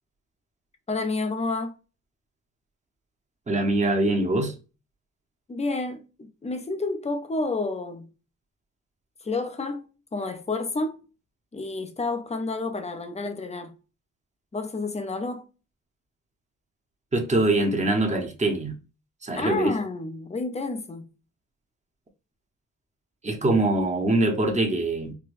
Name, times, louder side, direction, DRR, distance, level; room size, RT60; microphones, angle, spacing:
voice 1, 0.9-1.7 5.5-8.1 9.2-11.0 11.5-13.7 14.5-15.4 19.4-21.1, left 3 dB, 20° left, 0.6 m, -30 dB
voice 2, 3.5-4.5 17.1-18.7 19.2-19.7 23.2-25.1, right 2 dB, 20° right, 0.9 m, -23 dB
4.7 x 2.2 x 2.5 m
wide cardioid pair, 125°, 32 cm